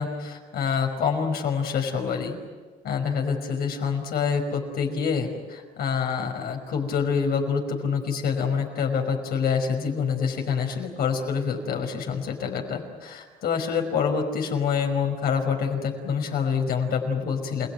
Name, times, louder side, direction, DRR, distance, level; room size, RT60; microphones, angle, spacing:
voice 1, 0.0-2.4 2.8-17.7, left 6 dB, 65° left, 3 dB, 5.5 m, -26 dB
28.5 x 19.0 x 9.4 m, 1.4 s
cardioid pair, 110°, 17 cm